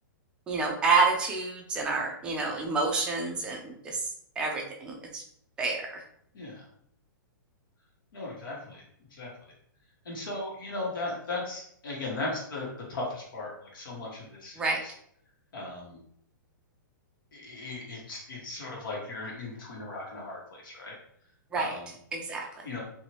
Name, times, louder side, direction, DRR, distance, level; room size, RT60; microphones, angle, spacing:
voice 1, 0.5-4.1 4.4-5.2 5.6-5.9 14.6-14.8 21.5-21.8 22.1-22.4, right 4 dB, 10° right, 0 dB, 0.3 m, -28 dB
voice 2, 8.1-8.8 9.2-9.3 10.0-14.9 15.5-16.0 17.3-20.9 21.6-21.9 22.6-22.8, left 2 dB, 80° left, -3 dB, 1.4 m, -37 dB
2.8 x 2.6 x 3.1 m, 0.68 s
hypercardioid pair, 165°, 11 cm